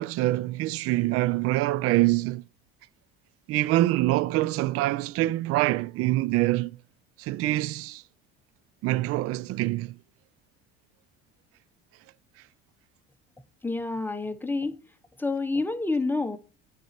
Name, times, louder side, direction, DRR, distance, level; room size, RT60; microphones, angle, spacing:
voice 1, 0.0-2.4 3.5-6.8 7.2-8.0 8.8-9.9, right 17 dB, 50° right, 0.4 m, -25 dB
voice 2, 13.6-14.8 15.2-16.4, left 3 dB, 5° left, 0.9 m, -28 dB
9.1 x 4.2 x 5.9 m
hypercardioid pair, 70°, 29 cm